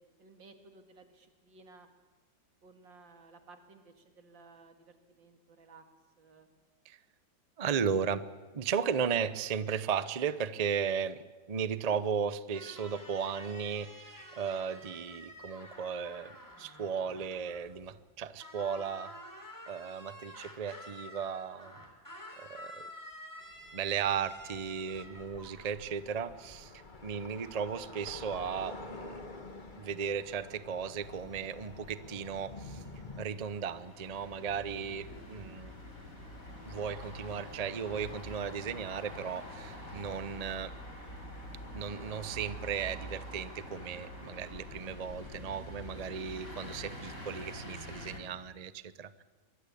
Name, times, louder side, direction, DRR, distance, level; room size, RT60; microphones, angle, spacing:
voice 1, 0.0-1.9 2.6-5.8 6.2-6.5, right 3 dB, 85° right, 7 dB, 2.9 m, -57 dB
voice 2, 7.6-8.2 8.5-16.3 16.6-19.1 19.7-21.8 22.4-22.9 23.7-26.7 27.0-29.2 29.8-32.8 33.2-35.7 36.7-40.7 41.7-49.2, right 7 dB, 45° right, 15 dB, 0.5 m, -35 dB
sound 1, 12.5-18.1 18.4-25.8, equal, 10° left, 3.4 m, -50 dB
sound 2, 23.4-33.2, left 2 dB, 25° left, 1.9 m, -49 dB
sound 3, 31.0-48.2, equal, 45° left, 4.7 m, -46 dB
25.0 x 21.5 x 8.6 m, 1.3 s
omnidirectional pair, 2.0 m